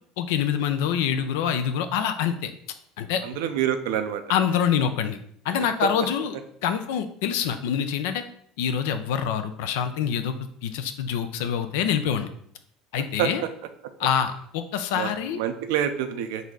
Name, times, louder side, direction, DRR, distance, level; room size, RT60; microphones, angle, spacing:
voice 1, 0.2-2.5 3.0-3.2 4.3-5.2 5.4-6.3 6.6-8.2 8.6-10.4 10.6-12.3 12.9-13.4 14.0-15.4, left 8 dB, 80° left, 10 dB, 0.5 m, -25 dB
voice 2, 3.2-4.2 5.5-5.7 13.2-13.3 14.9-16.5, right 10 dB, 85° right, 8 dB, 0.5 m, -27 dB
4.0 x 2.7 x 4.7 m, 0.67 s
supercardioid pair, 110°, 0 cm